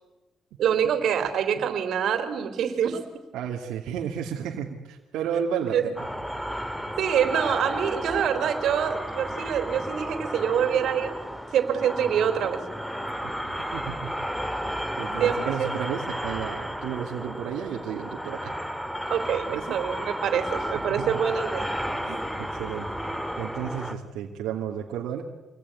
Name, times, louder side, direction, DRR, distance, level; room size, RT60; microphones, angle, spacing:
voice 1, 0.6-3.0 5.7-5.8 7.0-11.1 11.5-12.6 15.2-15.7 19.1-21.7, right 8 dB, 70° right, 9 dB, 4.0 m, -25 dB
voice 2, 3.3-6.1 13.2-14.1 15.0-18.5 19.5-19.8 20.7-21.2 22.0-25.2, right 8 dB, 90° right, -1 dB, 2.7 m, -33 dB
sound 1, 6.0-23.9, equal, ahead, 2.5 m, -33 dB
27.5 x 21.0 x 9.9 m, 1.1 s
cardioid pair, 90°, 0 cm